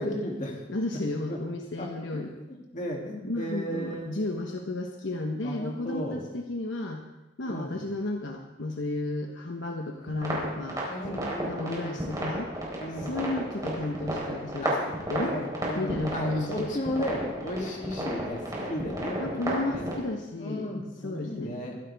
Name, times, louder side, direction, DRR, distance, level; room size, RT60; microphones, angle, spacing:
voice 1, 0.0-0.6 1.3-1.4 1.8-4.2 5.4-6.2 7.4-7.8 10.9-12.1 12.8-13.2 14.6-19.9 20.4-21.8, left 1 dB, 40° left, 0 dB, 2.7 m, -35 dB
voice 2, 0.7-2.3 3.3-7.0 7.4-10.8 11.4-12.5 13.0-14.7 15.1-15.4 15.8-16.7 19.2-20.7 21.0-21.8, left 2 dB, 70° left, 3 dB, 1.0 m, -33 dB
sound 1, 10.1-19.9, right 1 dB, 20° right, 4.0 m, -33 dB
22.5 x 12.0 x 3.5 m, 1.0 s
head